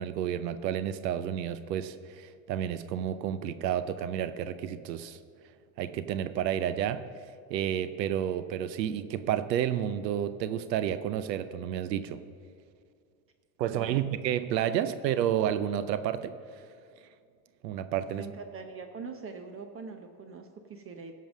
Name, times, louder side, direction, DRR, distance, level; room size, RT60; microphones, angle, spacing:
voice 1, 0.0-5.2 5.8-7.1 7.5-12.2 13.6-16.4 17.6-18.3, right 10 dB, 90° right, 12 dB, 0.7 m, -30 dB
voice 2, 13.6-14.1 14.7-15.0 18.1-21.1, right 5 dB, 25° right, 6 dB, 0.8 m, -43 dB
15.0 x 5.5 x 6.3 m, 2.2 s
supercardioid pair, 105°, 49 cm